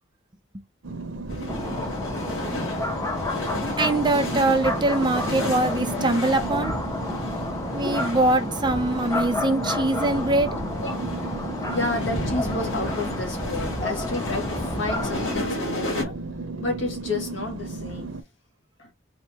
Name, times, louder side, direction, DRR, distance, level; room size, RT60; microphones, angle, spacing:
sound 1, 0.8-18.2, right 3 dB, 85° right, 0.8 m, -36 dB
sound 2, 1.3-16.0, left 1 dB, 85° left, 1.8 m, -33 dB
sound 3, 1.5-15.4, left 2 dB, 15° left, 0.7 m, -31 dB
voice 1, 3.8-6.7 7.7-10.5, right 2 dB, 25° right, 0.6 m, -23 dB
voice 2, 11.7-16.1 16.6-18.2 18.8-18.9, left 2 dB, 70° left, 1.7 m, -31 dB
4.1 x 2.9 x 3.4 m
head